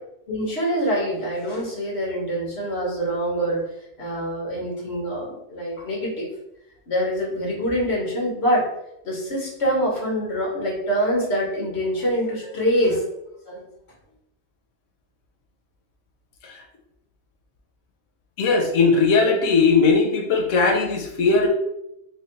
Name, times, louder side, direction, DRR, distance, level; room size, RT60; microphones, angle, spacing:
voice 1, 0.3-3.6 4.0-6.3 6.9-8.7 9.0-13.0 13.4-13.6, equal, 65° left, -3 dB, 1.5 m, -25 dB
voice 2, 18.4-21.5, left 4 dB, 90° left, 2 dB, 1.0 m, -19 dB
3.3 x 2.2 x 3.9 m, 0.82 s
omnidirectional pair, 1.2 m